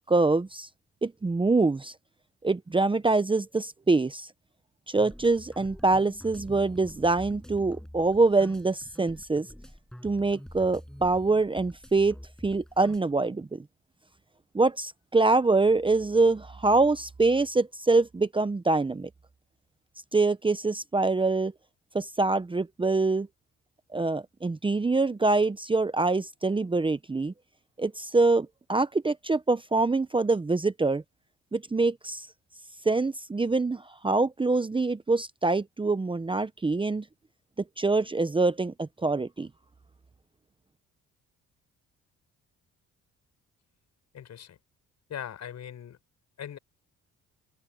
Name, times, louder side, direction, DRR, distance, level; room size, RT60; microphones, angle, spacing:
voice 1, 0.1-0.7 1.0-1.9 2.4-4.3 4.9-9.5 10.0-12.1 12.4-13.5 14.5-19.1 20.1-21.5 21.9-23.3 23.9-27.3 27.8-31.0 31.5-32.3 32.9-37.0 37.8-39.5, right 3 dB, 15° right, 0.8 m, -25 dB
sound 1, 4.9-13.0, equal, ahead, 6.2 m, -46 dB
voice 2, 44.1-44.6 45.1-46.0 46.4-46.6, left 9 dB, 65° left, 6.0 m, -40 dB
cardioid pair, 90°, 30 cm